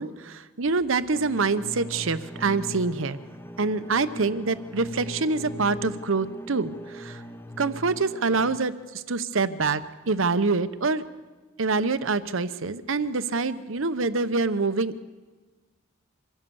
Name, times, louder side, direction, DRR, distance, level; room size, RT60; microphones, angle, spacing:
voice 1, 0.0-3.2 3.6-7.2 7.6-11.0 11.6-15.0, right 3 dB, 70° right, 13 dB, 0.9 m, -26 dB
sound 1, 1.1-8.6, equal, 10° left, 0.9 m, -40 dB
24.5 x 16.0 x 7.1 m, 1.3 s
head